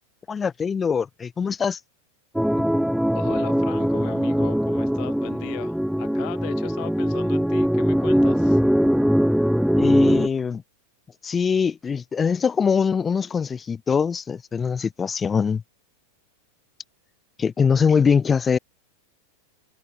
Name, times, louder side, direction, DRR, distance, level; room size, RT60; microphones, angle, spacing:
voice 1, 0.3-1.8 9.8-10.6 11.2-15.6 17.4-18.6, left 6 dB, 20° left, 3.5 m, -22 dB
sound 1, 2.4-10.3, equal, ahead, 2.6 m, -21 dB
voice 2, 3.1-8.6, left 32 dB, 45° left, 5.7 m, -38 dB
figure-of-eight pair, 90°, 0 cm